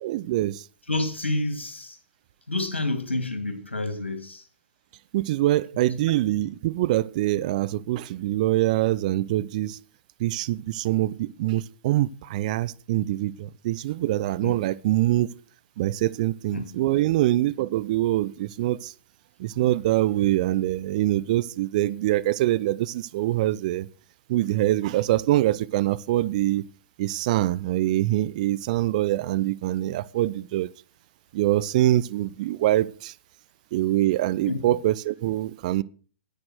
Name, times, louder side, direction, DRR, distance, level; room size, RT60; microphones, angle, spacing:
voice 1, 0.0-0.6 5.1-9.8 10.2-15.3 15.8-18.9 19.4-23.9 24.3-26.6 27.0-30.7 31.3-33.1 33.7-35.8, right 15 dB, 40° right, 0.5 m, -24 dB
voice 2, 0.9-2.0 2.5-4.4 5.7-5.9 6.3-6.4 14.4-14.6 16.5-16.7 34.5-34.6, left 2 dB, 75° left, 2.7 m, -29 dB
10.0 x 9.6 x 6.4 m
figure-of-eight pair, 110°, 6 cm